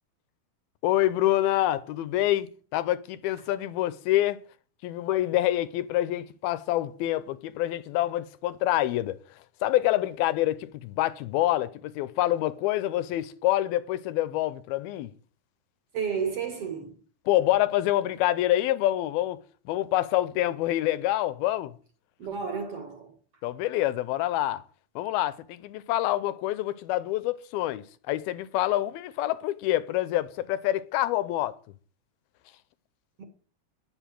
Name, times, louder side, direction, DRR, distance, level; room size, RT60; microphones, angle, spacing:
voice 1, 0.8-4.4 4.8-9.2 9.6-15.1 17.3-21.8 23.4-24.6 25.0-31.6, left 14 dB, 85° left, 2.7 m, -26 dB
voice 2, 15.9-17.0 22.2-23.1 33.2-33.3, right 6 dB, 50° right, 2.2 m, -32 dB
10.0 x 7.8 x 9.1 m
omnidirectional pair, 4.3 m